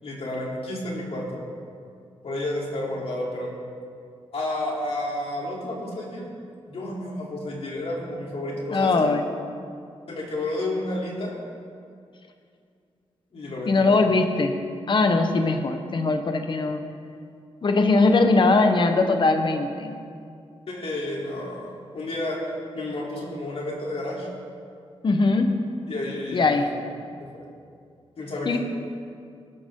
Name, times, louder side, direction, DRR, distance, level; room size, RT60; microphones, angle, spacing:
voice 1, 0.0-1.5 2.2-3.5 4.3-6.3 6.7-9.1 10.1-11.3 13.3-13.9 20.7-22.4 22.7-24.3 25.9-26.7 27.2-27.3 28.2-28.6, left 1 dB, 65° left, -3 dB, 3.4 m, -31 dB
voice 2, 8.7-9.2 13.7-14.5 14.9-16.8 17.6-20.0 25.0-25.5 26.3-26.7 28.5-28.6, left 3 dB, 45° left, 5 dB, 1.1 m, -20 dB
19.5 x 12.0 x 3.8 m, 2.3 s
wide cardioid pair, 115°, 11 cm